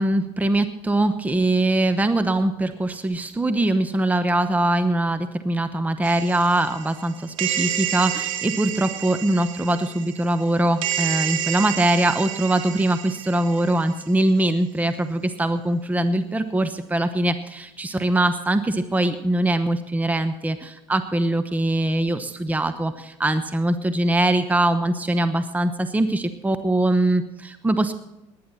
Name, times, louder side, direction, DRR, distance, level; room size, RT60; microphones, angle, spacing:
voice 1, 0.0-27.9, right 1 dB, 10° right, 10 dB, 0.9 m, -22 dB
sound 1, 6.0-14.1, right 10 dB, 85° right, 1.5 m, -30 dB
19.0 x 10.5 x 4.2 m, 0.96 s
hypercardioid pair, 75°, 17 cm